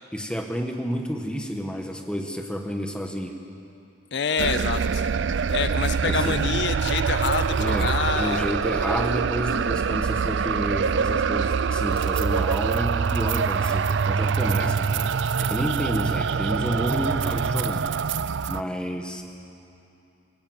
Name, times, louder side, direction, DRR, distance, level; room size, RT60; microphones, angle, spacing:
voice 1, 0.1-3.4 6.1-6.4 7.6-17.9 18.5-19.2, equal, 5° left, 3 dB, 1.3 m, -30 dB
voice 2, 4.1-5.1 5.5-8.5, left 6 dB, 60° left, 12 dB, 0.5 m, -27 dB
sound 1, 4.4-18.6, right 6 dB, 70° right, 0.4 m, -24 dB
21.0 x 17.0 x 7.9 m, 2.7 s
head